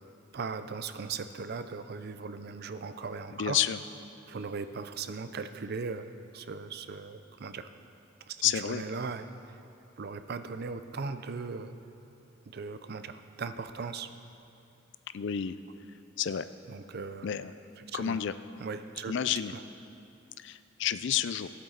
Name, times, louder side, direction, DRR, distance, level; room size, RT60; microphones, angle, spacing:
voice 1, 0.3-3.6 4.3-6.1 6.3-7.7 8.3-9.3 10.0-11.7 12.5-14.1 16.7-17.3 17.9-18.2 18.6-19.3, right 4 dB, 50° right, 10 dB, 0.5 m, -38 dB
voice 2, 3.4-3.8 8.4-8.8 15.1-15.6 16.2-16.5 17.2-17.5 17.9-18.4 19.1-19.5 20.4-21.5, left 9 dB, 60° left, 13 dB, 0.4 m, -30 dB
17.5 x 8.2 x 3.9 m, 2.7 s
head